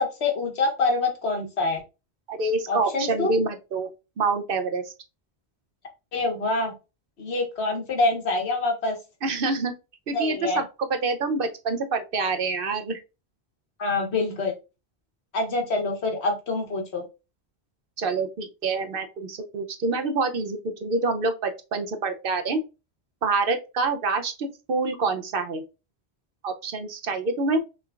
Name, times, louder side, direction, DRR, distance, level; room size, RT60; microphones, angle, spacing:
voice 1, 0.0-1.8 2.7-3.3 6.1-6.7 7.2-9.0 10.1-10.6 13.8-14.5 15.3-17.0, left 3 dB, 80° left, 1.5 m, -26 dB
voice 2, 2.3-3.9 4.2-4.9 9.2-9.7 10.1-10.7 11.0-13.0 18.0-22.6 23.2-25.6 26.4-27.6, right 3 dB, 60° right, 0.8 m, -26 dB
6.0 x 3.3 x 2.4 m
omnidirectional pair, 1.1 m